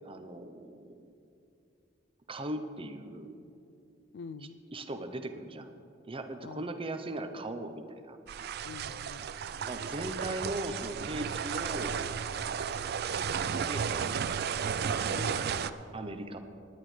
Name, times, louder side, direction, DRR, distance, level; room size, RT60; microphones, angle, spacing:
voice 1, 0.0-1.0 2.3-3.3 4.7-5.7 6.1-8.2 9.6-12.0 13.5-14.3 15.9-16.4, right 1 dB, 30° right, 7 dB, 0.7 m, -39 dB
voice 2, 4.1-4.6 6.4-6.6 8.6-9.3 15.0-15.8, left 5 dB, 65° left, 14 dB, 0.4 m, -45 dB
sound 1, 8.3-15.7, right 7 dB, 55° right, 0.4 m, -33 dB
19.0 x 11.0 x 3.3 m, 2.6 s
head